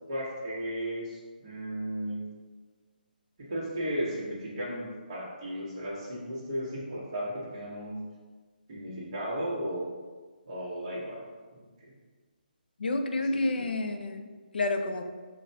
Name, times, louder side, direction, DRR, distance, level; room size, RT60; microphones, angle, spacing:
voice 1, 0.0-2.2 3.4-8.0 8.7-9.9 10.5-11.3 11.5-11.9 13.2-13.7, equal, 30° right, -5 dB, 0.9 m, -35 dB
voice 2, 12.8-15.0, left 2 dB, 85° left, 5 dB, 0.5 m, -30 dB
5.7 x 2.1 x 2.7 m, 1.4 s
hypercardioid pair, 175°, 5 cm